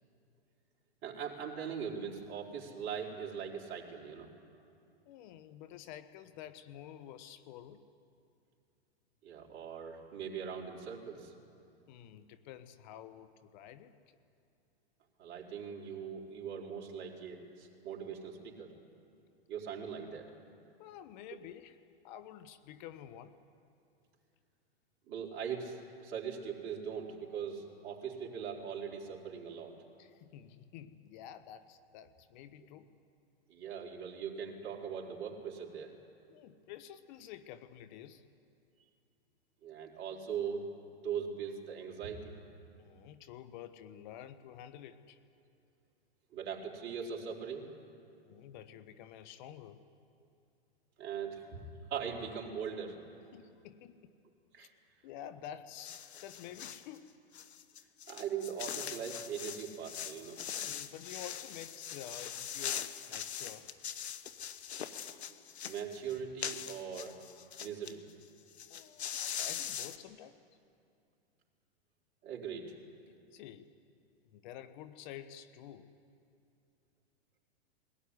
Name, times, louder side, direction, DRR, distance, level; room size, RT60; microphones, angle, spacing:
voice 1, 1.0-4.3 9.2-11.3 15.2-18.7 19.5-20.3 25.1-29.7 33.5-35.9 39.6-40.7 41.0-42.3 46.3-47.7 51.0-51.6 51.9-53.0 54.5-54.7 58.1-60.4 65.1-65.2 65.6-67.2 67.6-68.0 72.2-72.8, right 7 dB, 35° right, -1 dB, 4.1 m, -40 dB
voice 2, 5.0-7.8 11.9-13.9 20.8-21.8 22.0-23.3 30.0-32.9 36.3-38.3 42.8-45.2 48.2-49.8 53.3-54.1 54.6-54.7 55.0-57.1 60.5-63.7 68.7-70.4 73.3-73.7 74.3-75.9, left 10 dB, 45° left, 14 dB, 1.1 m, -50 dB
sound 1, 55.8-56.9 57.3-67.9 68.2-68.3 68.5-70.0, left 8 dB, 80° left, 1.3 m, -41 dB
21.5 x 18.0 x 9.7 m, 2.6 s
hypercardioid pair, 120°, 32 cm